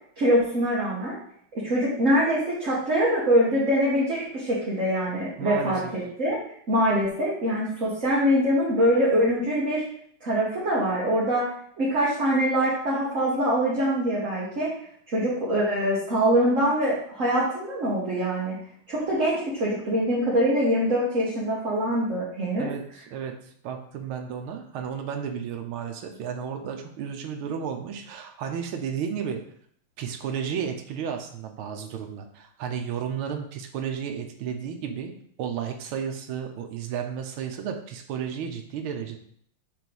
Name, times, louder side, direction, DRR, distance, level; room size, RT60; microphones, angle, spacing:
voice 1, 0.2-1.2 1.5-6.4 6.7-9.8 10.2-11.5 11.8-14.7 15.1-18.6 18.9-22.7, equal, 40° right, -7 dB, 1.8 m, -24 dB
voice 2, 5.4-5.8 22.5-23.4 23.6-29.4 30.0-35.1 35.4-39.2, right 7 dB, 80° right, 3 dB, 1.7 m, -33 dB
6.8 x 3.4 x 6.1 m, 0.63 s
omnidirectional pair, 2.3 m